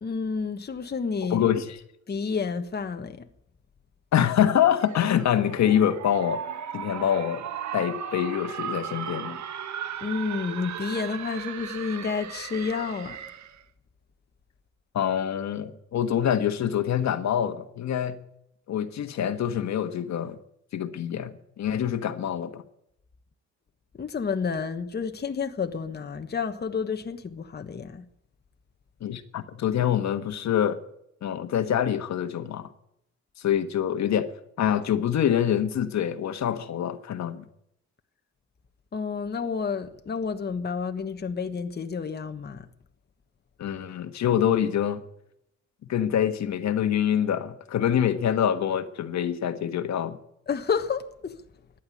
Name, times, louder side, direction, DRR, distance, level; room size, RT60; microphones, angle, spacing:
voice 1, 0.0-1.4 2.1-3.2 10.0-13.2 23.9-28.1 38.9-42.7 50.5-51.4, left 5 dB, 35° left, 1.3 m, -30 dB
voice 2, 1.3-1.8 4.1-6.4 6.7-7.4 7.7-9.4 14.9-18.2 18.7-20.4 20.7-22.6 29.0-30.8 31.2-32.7 33.4-34.3 34.6-37.4 43.6-45.0 45.9-50.2, left 9 dB, 65° left, 1.5 m, -25 dB
sound 1, 4.8-13.6, right 9 dB, 65° right, 1.3 m, -36 dB
14.5 x 10.5 x 8.5 m
cardioid pair, 90°, 30 cm